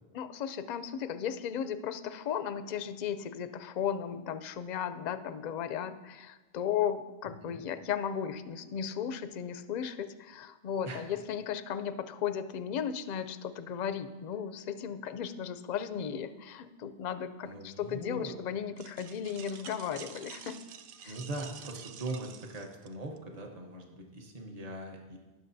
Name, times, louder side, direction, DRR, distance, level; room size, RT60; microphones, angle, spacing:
voice 1, 0.1-20.6 21.0-21.2, left 8 dB, 55° left, 11 dB, 0.5 m, -35 dB
voice 2, 7.2-7.6 10.8-11.0 17.4-18.4 21.0-25.2, right 2 dB, 40° right, 1 dB, 1.1 m, -41 dB
sound 1, 18.8-23.2, right 8 dB, 60° right, 0.7 m, -49 dB
18.5 x 6.3 x 2.7 m, 1.2 s
omnidirectional pair, 1.1 m